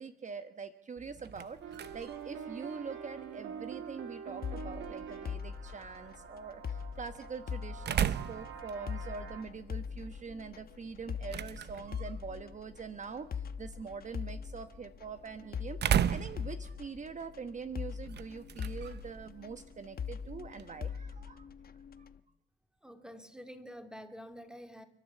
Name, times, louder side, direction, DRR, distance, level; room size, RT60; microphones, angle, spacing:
voice 1, 0.0-22.1, right 5 dB, 40° right, 9 dB, 1.2 m, -44 dB
sound 1, 1.0-20.8, right 9 dB, 55° right, 0.9 m, -39 dB
sound 2, 1.6-9.4, right 7 dB, 75° right, 3.1 m, -46 dB
sound 3, 4.4-22.2, left 7 dB, 50° left, 1.2 m, -42 dB
voice 2, 22.8-24.9, equal, 5° right, 7 dB, 2.5 m, -48 dB
29.0 x 11.0 x 8.4 m, 0.87 s
cardioid pair, 90°, 20 cm